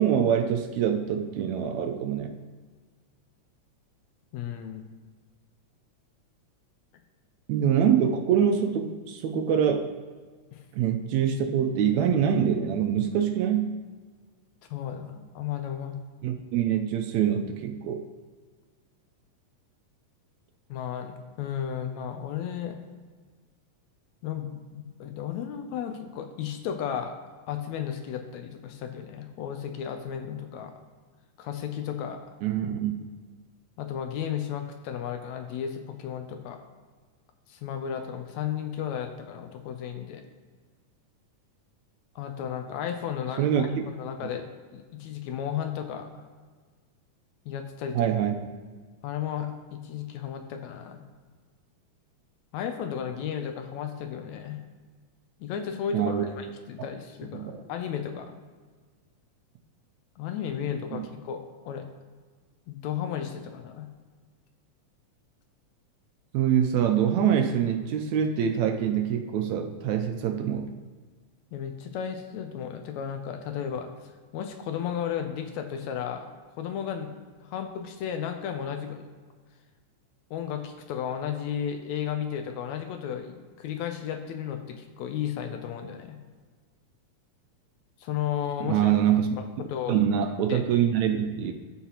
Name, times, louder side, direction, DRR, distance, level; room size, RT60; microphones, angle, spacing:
voice 1, 0.0-2.4 7.5-9.9 10.7-13.7 16.2-18.0 32.4-33.1 43.4-43.9 47.9-48.3 55.9-56.2 57.3-57.6 60.9-61.1 66.3-70.7 88.6-89.3 89.9-91.5, right 8 dB, 75° right, 5 dB, 1.8 m, -25 dB
voice 2, 4.3-4.8 10.5-10.6 14.7-16.0 20.7-22.8 24.2-27.1 27.5-30.7 31.4-32.2 33.8-36.6 37.5-40.2 42.1-46.3 47.4-48.1 49.0-51.0 52.5-54.6 55.4-58.3 60.2-61.4 61.6-61.9 62.7-63.9 71.5-76.3 76.6-77.1 77.4-79.1 80.3-86.2 88.0-88.9 89.4-90.0 90.5-90.6, left 8 dB, 75° left, 6 dB, 1.8 m, -34 dB
14.0 x 5.6 x 2.9 m, 1.5 s
omnidirectional pair, 3.5 m